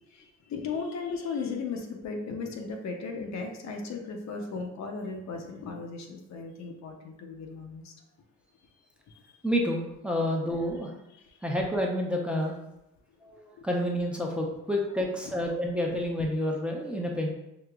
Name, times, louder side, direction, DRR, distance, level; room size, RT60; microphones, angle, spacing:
voice 1, 0.1-7.9 9.1-9.4 11.3-11.4 13.6-13.7, left 4 dB, 65° left, 2 dB, 0.7 m, -36 dB
voice 2, 9.4-10.9 11.4-12.6 13.2-17.3, equal, 5° right, -1 dB, 0.7 m, -29 dB
4.8 x 2.8 x 2.3 m, 0.86 s
cardioid pair, 90°, 30 cm